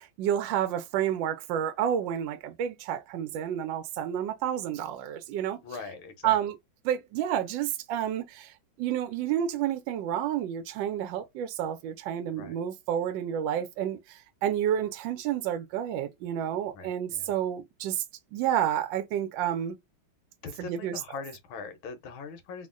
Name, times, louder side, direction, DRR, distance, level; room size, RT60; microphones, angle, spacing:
voice 1, 0.0-5.6 6.2-6.6 6.8-8.5 8.8-18.0 18.3-19.8 20.6-21.0, right 10 dB, 75° right, 1.2 m, -30 dB
voice 2, 5.6-6.4 12.3-12.6 16.7-17.3 20.4-22.7, left 5 dB, 90° left, 1.6 m, -41 dB
3.6 x 2.1 x 2.4 m
omnidirectional pair, 2.2 m